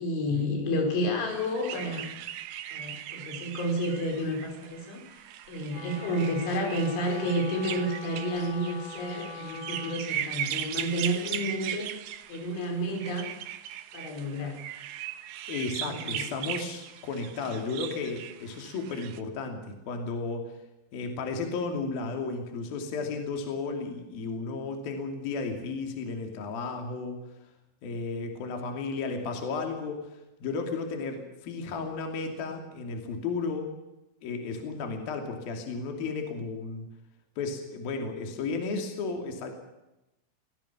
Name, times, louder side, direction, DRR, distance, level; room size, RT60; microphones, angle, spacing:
voice 1, 0.0-2.1 2.7-5.0 5.5-11.9 12.3-13.3 13.9-14.6 15.9-16.2, equal, 90° left, 2 dB, 7.5 m, -30 dB
sound 1, 1.3-19.2, right 11 dB, 85° right, 3.4 m, -39 dB
Wind instrument woodwind instrument, 5.7-10.1, left 3 dB, 70° left, 4.8 m, -42 dB
voice 2, 15.5-20.5 20.9-27.2 27.8-33.7 34.2-36.9 37.4-39.5, left 4 dB, 55° left, 4 dB, 4.3 m, -34 dB
24.0 x 17.5 x 7.2 m, 0.95 s
omnidirectional pair, 5.3 m